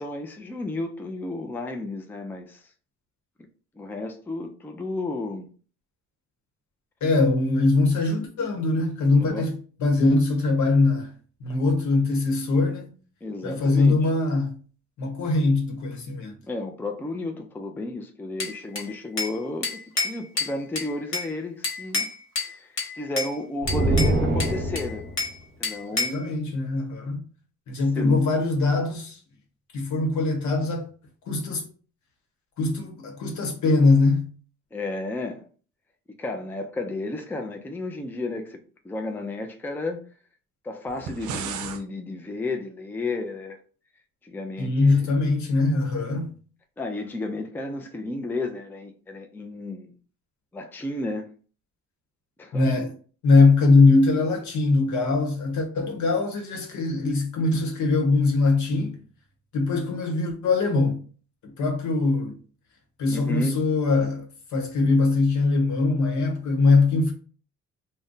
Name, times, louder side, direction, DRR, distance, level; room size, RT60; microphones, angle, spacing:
voice 1, 0.0-2.6 3.8-5.5 9.2-9.4 13.2-14.0 16.4-22.1 22.5-25.0 25.6-26.3 28.0-28.2 34.7-35.5 36.2-38.6 38.8-40.0 40.6-43.6 44.2-45.1 46.8-49.9 50.5-51.3 52.4-52.6 63.1-63.6, left 2 dB, 5° left, 0.4 m, -32 dB
voice 2, 7.0-11.1 11.4-12.9 13.4-14.6 15.0-16.4 25.9-27.2 27.7-29.2 29.7-30.9 31.3-31.7 32.6-34.3 44.6-46.3 52.5-52.9 53.2-59.0 59.5-61.0 61.4-62.4 63.0-64.3 64.5-67.1, left 3 dB, 75° left, 1.0 m, -22 dB
Bell / Glass, 18.4-19.4 19.6-21.3 21.6-22.5 22.8-23.3 23.7-25.4 25.6-26.2, left 3 dB, 45° left, 1.2 m, -29 dB
sound 1, 23.6-25.2, right 1 dB, 35° right, 1.1 m, -23 dB
sound 2, 40.9-41.8, right 7 dB, 75° right, 0.5 m, -34 dB
2.5 x 2.2 x 3.7 m
cardioid pair, 90°, 30 cm